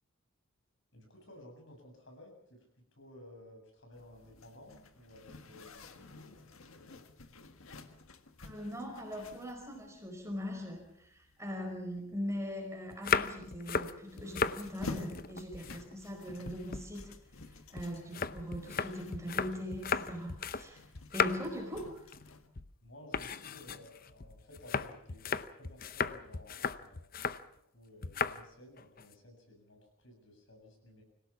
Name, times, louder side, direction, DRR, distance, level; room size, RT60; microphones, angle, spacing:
voice 1, 0.9-2.6 2.9-5.9 6.1-7.0 22.8-27.0 27.7-31.0, left 1 dB, 60° left, 2 dB, 7.5 m, -55 dB
Zipper (clothing), 3.9-22.5, left 2 dB, 85° left, 1.7 m, -51 dB
voice 2, 8.4-17.1 17.5-20.8 21.1-22.1, equal, 15° right, 2 dB, 4.8 m, -41 dB
sound 1, 12.9-14.6 15.0-16.2 16.5-20.7 20.9-21.6 22.0-22.3 22.5-22.7 23.1-27.4 28.0-28.4 28.8-29.1, left 5 dB, 45° left, 0.8 m, -35 dB
25.5 x 17.0 x 7.2 m, 0.77 s
head